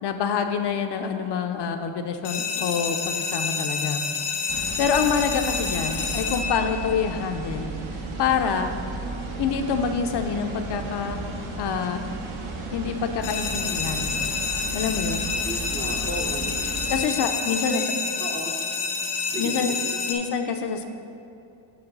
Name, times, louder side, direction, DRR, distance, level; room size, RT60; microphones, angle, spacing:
voice 1, 0.0-4.0 4.4-7.7 8.2-8.7 9.4-11.2 11.6-12.0 12.7-14.1 14.7-15.3 16.9-17.8 19.4-19.7 20.1-20.8, left 6 dB, 55° left, 6 dB, 0.5 m, -26 dB
sound 1, 2.2-7.1 13.2-20.2, left 5 dB, 85° left, 0.9 m, -29 dB
sound 2, 4.5-17.0, right 3 dB, 70° right, 1.0 m, -34 dB
voice 2, 15.4-16.6 17.6-18.6 19.3-20.0, right 1 dB, 25° right, 1 dB, 0.5 m, -34 dB
7.8 x 3.1 x 5.9 m, 2.7 s
cardioid pair, 140°, 50 cm